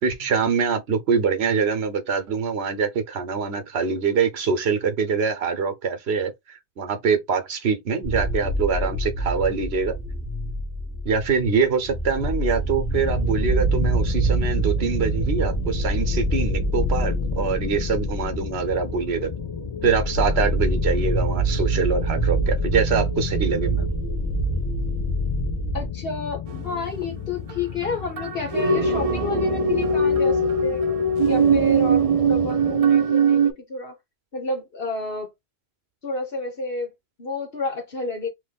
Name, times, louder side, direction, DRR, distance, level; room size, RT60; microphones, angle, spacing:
voice 1, 0.0-10.0 11.0-19.3 19.8-23.9, right 5 dB, 75° right, 1.1 m, -24 dB
sound 1, 8.0-25.9, right 2 dB, 15° right, 0.7 m, -26 dB
sound 2, 12.9-32.8, left 9 dB, 45° left, 0.4 m, -33 dB
voice 2, 25.7-30.8 31.3-33.9 34.3-35.3 36.0-36.9 37.2-38.3, left 2 dB, 65° left, 1.5 m, -30 dB
sound 3, 26.5-26.8 27.5-27.6 27.8-27.9 28.2-33.5, right 3 dB, 50° right, 0.5 m, -20 dB
3.0 x 3.0 x 3.9 m
omnidirectional pair, 1.1 m